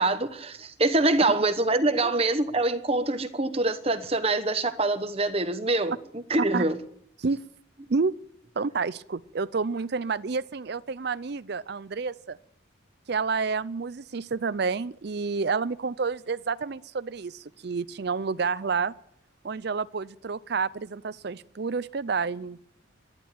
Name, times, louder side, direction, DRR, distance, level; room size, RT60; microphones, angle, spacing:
voice 1, 0.0-6.8, right 2 dB, 30° right, 1.1 m, -25 dB
voice 2, 8.6-12.4 13.1-18.9 19.4-22.6, right 4 dB, 55° right, 0.5 m, -29 dB
12.0 x 11.0 x 8.9 m
head